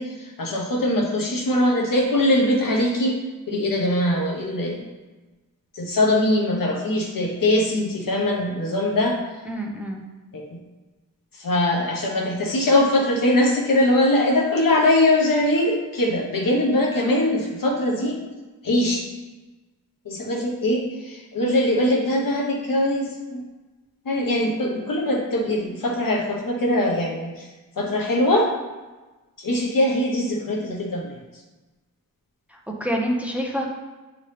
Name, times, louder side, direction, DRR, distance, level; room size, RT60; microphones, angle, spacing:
voice 1, 0.0-3.2 3.5-4.9 5.7-9.2 10.3-10.5 11.3-18.2 18.6-19.0 20.0-23.4 24.0-27.5 27.8-28.5 29.4-31.1, left 1 dB, 80° left, -1 dB, 1.2 m, -22 dB
voice 2, 9.5-10.0 32.5-33.7, equal, 5° right, 0 dB, 0.6 m, -27 dB
8.8 x 3.8 x 3.3 m, 1.2 s
wide cardioid pair, 155°, 33 cm